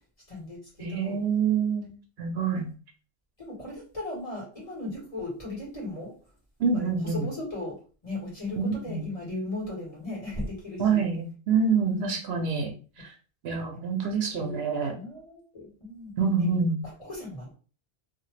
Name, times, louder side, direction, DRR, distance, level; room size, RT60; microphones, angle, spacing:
voice 1, 0.3-1.2 2.5-2.6 3.4-6.1 7.0-7.7 8.0-11.1 11.8-12.2 13.7-13.8 14.3-16.1 17.0-17.5, left 2 dB, 35° left, -4 dB, 1.5 m, -37 dB
voice 2, 0.8-2.7 6.6-7.3 8.6-9.1 10.8-12.7 13.0-13.1 13.4-14.9 16.2-16.8, right 5 dB, 75° right, 3 dB, 0.8 m, -26 dB
2.8 x 2.2 x 3.1 m, 0.38 s
omnidirectional pair, 1.1 m